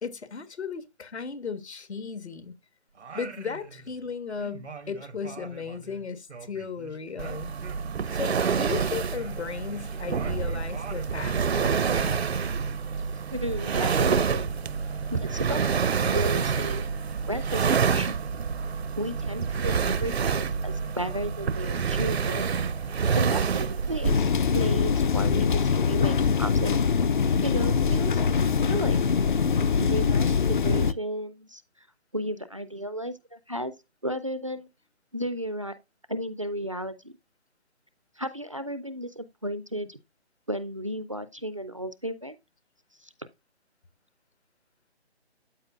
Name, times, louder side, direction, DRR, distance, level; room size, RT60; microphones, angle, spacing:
voice 1, 0.0-2.5 3.1-7.5 8.1-12.2, left 6 dB, 80° left, 1.4 m, -36 dB
Singing, 3.0-4.1 4.4-8.0 8.3-11.5, right 5 dB, 90° right, 1.1 m, -44 dB
sound 1, 7.2-24.2, right 6 dB, 70° right, 0.7 m, -27 dB
voice 2, 13.3-14.5 15.1-15.7 16.0-16.8 17.3-18.2 18.9-22.5 23.1-24.2 24.5-26.8 27.4-28.2 28.7-29.2 29.8-31.6 32.1-33.7 34.0-34.7 35.1-35.7 36.1-37.1 38.2-40.0 40.5-42.4 43.0-43.1, equal, 30° right, 0.4 m, -33 dB
sound 2, 24.0-30.9, left 6 dB, 50° left, 0.5 m, -23 dB
13.0 x 4.6 x 2.4 m
figure-of-eight pair, 155°, 33 cm